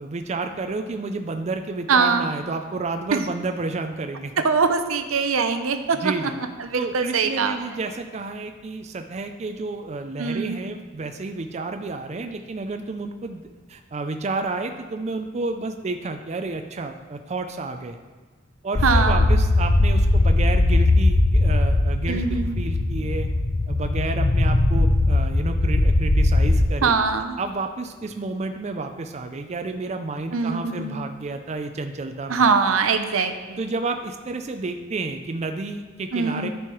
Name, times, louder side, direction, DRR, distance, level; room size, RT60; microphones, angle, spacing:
voice 1, 0.0-4.4 5.9-6.4 6.7-13.4 13.7-18.0 18.6-22.2 22.6-23.3 23.7-27.0 27.4-32.4 33.6-36.5, right 3 dB, 30° right, 6 dB, 0.4 m, -30 dB
voice 2, 1.9-2.3 3.1-3.2 4.4-6.1 6.6-7.6 10.2-10.6 18.8-19.2 22.1-22.6 26.8-27.4 30.3-31.0 32.3-33.6 36.1-36.5, right 5 dB, 80° right, 8 dB, 0.6 m, -22 dB
sound 1, 18.7-26.6, left 2 dB, 40° left, 0.6 m, -19 dB
13.5 x 4.6 x 3.1 m, 1.4 s
head